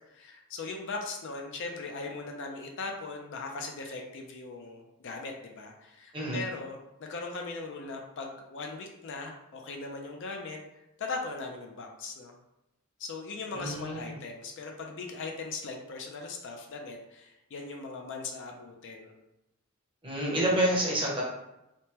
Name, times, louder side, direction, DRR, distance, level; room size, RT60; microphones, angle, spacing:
voice 1, 0.1-10.6 11.0-12.4 13.0-19.1, left 3 dB, 55° left, 2 dB, 0.4 m, -39 dB
voice 2, 13.5-14.1 20.0-21.2, right 1 dB, 25° right, -4 dB, 0.7 m, -28 dB
3.3 x 2.1 x 2.8 m, 0.91 s
head